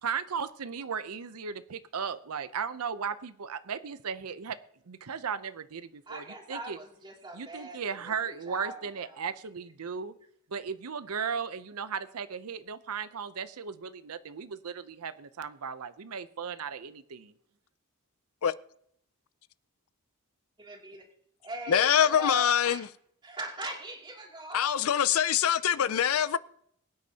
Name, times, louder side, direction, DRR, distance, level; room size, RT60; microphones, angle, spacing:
voice 1, 0.0-4.6 4.9-6.8 7.3-10.1 10.5-17.3, right 6 dB, 80° right, 0.6 m, -36 dB
voice 2, 6.1-9.1 20.6-21.1 21.4-22.8 23.2-24.9, right 1 dB, 20° right, 2.7 m, -41 dB
voice 3, 21.7-22.9 24.5-26.4, left 9 dB, 70° left, 0.5 m, -24 dB
22.5 x 9.5 x 2.9 m
head